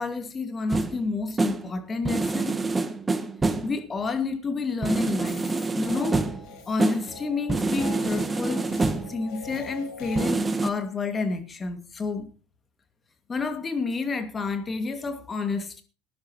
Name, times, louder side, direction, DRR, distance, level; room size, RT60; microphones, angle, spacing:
voice 1, 0.0-2.6 3.6-6.2 6.7-8.7 9.1-12.3 13.3-15.8, left 4 dB, 30° left, 2.4 m, -29 dB
sound 1, 0.7-1.0 1.4-1.7 2.1-3.8 4.8-6.5 6.8-7.1 7.5-9.2 10.2-10.7, right 3 dB, 20° right, 1.3 m, -27 dB
sound 2, 5.2-10.3, left 6 dB, 65° left, 4.1 m, -42 dB
20.0 x 11.0 x 3.1 m
hypercardioid pair, 80°, 0 cm